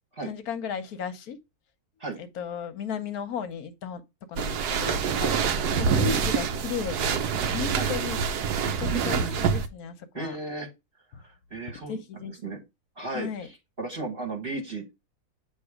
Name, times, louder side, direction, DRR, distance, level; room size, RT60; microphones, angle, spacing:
voice 1, 0.2-1.4 2.2-4.0 4.3-5.0 5.8-8.2 8.6-10.4 11.9-12.6 13.1-13.5, left 7 dB, 75° left, 1.3 m, -35 dB
sound 1, 4.4-9.7, right 6 dB, 85° right, 1.3 m, -26 dB
voice 2, 8.9-9.4 10.1-10.7 11.2-12.0 12.3-12.6 13.0-14.9, right 3 dB, 40° right, 1.5 m, -35 dB
8.3 x 3.0 x 4.8 m
omnidirectional pair, 1.6 m